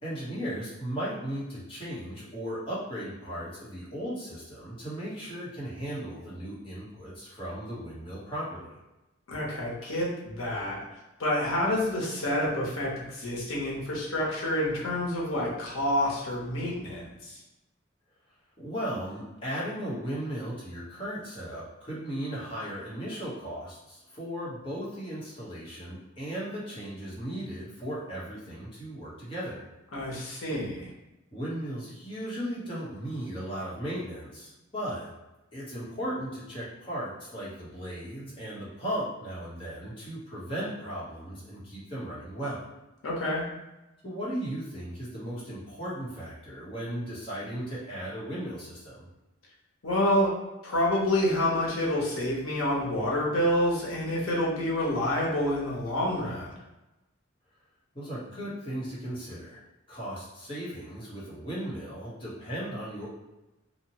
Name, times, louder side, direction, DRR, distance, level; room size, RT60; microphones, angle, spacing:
voice 1, 0.0-8.7 18.6-29.6 30.1-30.3 31.3-35.1 35.5-42.6 44.0-49.1 57.9-59.6 59.9-63.1, equal, 25° left, -8 dB, 0.9 m, -36 dB
voice 2, 9.3-10.8 11.2-17.4 29.9-30.9 43.0-43.4 49.8-50.3 50.6-56.5, left 1 dB, 90° left, -4 dB, 0.9 m, -28 dB
2.8 x 2.1 x 2.8 m, 0.99 s
head